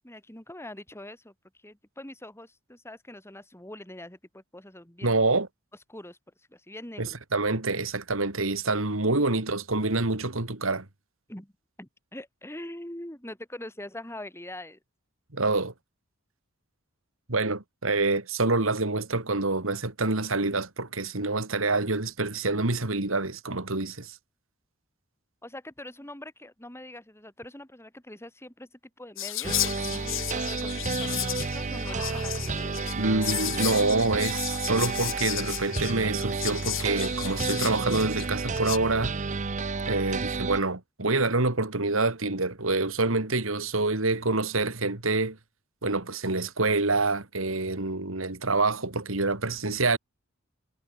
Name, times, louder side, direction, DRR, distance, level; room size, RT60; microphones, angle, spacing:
voice 1, 0.0-1.3 1.6-5.2 5.9-7.2 11.3-11.5 11.8-14.8 25.4-33.0, left 1 dB, 10° left, 5.3 m, -43 dB
voice 2, 5.0-5.5 7.0-10.9 15.3-15.7 17.3-24.2 32.9-39.1 39.9-45.4 45.8-50.0, right 3 dB, 70° right, 2.6 m, -27 dB
Whispering, 29.2-38.8, left 13 dB, 70° left, 3.3 m, -34 dB
sound 1, 29.4-40.6, right 4 dB, 35° right, 0.7 m, -31 dB
head